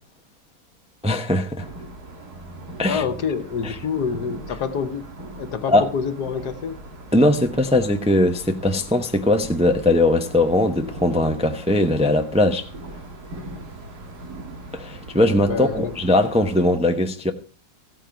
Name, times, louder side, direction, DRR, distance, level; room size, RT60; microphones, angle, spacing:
voice 1, 1.0-1.7 2.8-3.0 3.6-3.8 5.7-5.9 7.1-12.7 14.7-17.3, left 1 dB, 5° right, 0.6 m, -20 dB
sound 1, 1.6-16.8, right 1 dB, 70° right, 2.5 m, -39 dB
voice 2, 2.9-5.1 5.4-6.8 15.5-15.9, left 6 dB, 75° left, 1.6 m, -27 dB
15.0 x 9.1 x 4.6 m
omnidirectional pair, 1.7 m